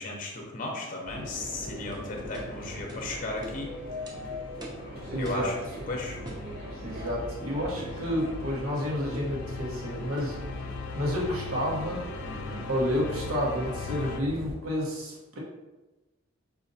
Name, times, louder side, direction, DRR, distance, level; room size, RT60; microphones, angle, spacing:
voice 1, 0.0-3.7 5.1-5.5 5.9-6.2 12.2-12.6, left 2 dB, 40° left, 1 dB, 0.6 m, -35 dB
sound 1, 1.1-14.5, equal, 45° right, 1.0 m, -41 dB
sound 2, 1.3-14.2, left 5 dB, 85° left, 0.3 m, -42 dB
sound 3, 1.9-2.0 2.3-2.5 2.9-3.0 3.4-3.6 4.1-4.2 4.6-4.8 5.2-5.5 6.2-6.5 7.8-8.0 9.1-9.4 10.2-10.4, equal, 20° right, 0.4 m, -43 dB
voice 2, 5.1-5.5 6.8-10.7 10.9-12.0 12.7-15.4, equal, 85° right, -4 dB, 1.0 m, -30 dB
5.0 x 2.5 x 2.6 m, 1.1 s
head